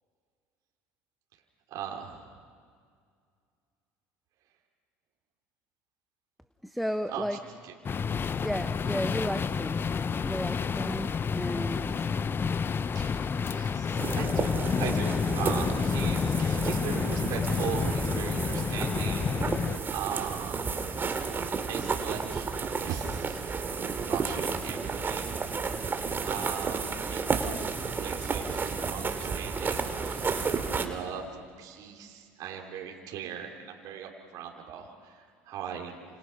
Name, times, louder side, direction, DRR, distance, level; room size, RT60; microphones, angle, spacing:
voice 1, 1.7-2.3 7.1-7.4 7.6-7.7 12.9-20.7 21.7-22.5 22.8-23.5 24.0-25.6 26.3-36.0, right 8 dB, 60° right, 0 dB, 3.2 m, -39 dB
voice 2, 6.6-7.4 8.4-9.9 10.2-12.1, equal, ahead, 9 dB, 1.1 m, -33 dB
sound 1, 7.8-19.8, left 6 dB, 30° left, 0.7 m, -29 dB
sound 2, 14.0-30.9, right 5 dB, 30° right, 2.6 m, -32 dB
29.5 x 27.5 x 5.8 m, 2.1 s
hypercardioid pair, 70°, 7 cm